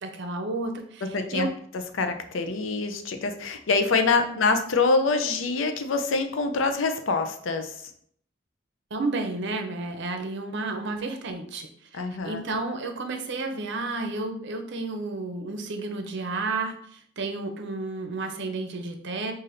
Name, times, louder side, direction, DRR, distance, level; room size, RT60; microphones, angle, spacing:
voice 1, 0.0-1.5 4.3-4.4 8.9-19.3, right 3 dB, 65° right, 6 dB, 0.6 m, -32 dB
voice 2, 1.1-1.5 1.9-7.9 11.9-12.4, left 4 dB, 85° left, 7 dB, 0.5 m, -25 dB
5.7 x 2.6 x 2.6 m, 0.63 s
head